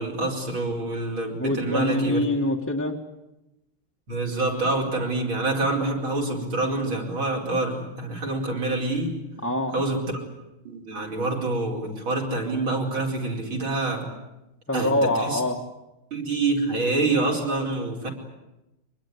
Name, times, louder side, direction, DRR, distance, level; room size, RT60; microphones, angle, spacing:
voice 1, 0.0-2.2 4.1-9.2 9.7-10.2 10.7-14.1 14.7-15.4 16.1-18.1, right 2 dB, 70° right, -1 dB, 5.6 m, -26 dB
voice 2, 1.4-3.0 9.4-9.7 14.7-15.6, left 1 dB, 5° left, -1 dB, 1.9 m, -24 dB
24.5 x 21.0 x 9.9 m, 0.95 s
omnidirectional pair, 2.3 m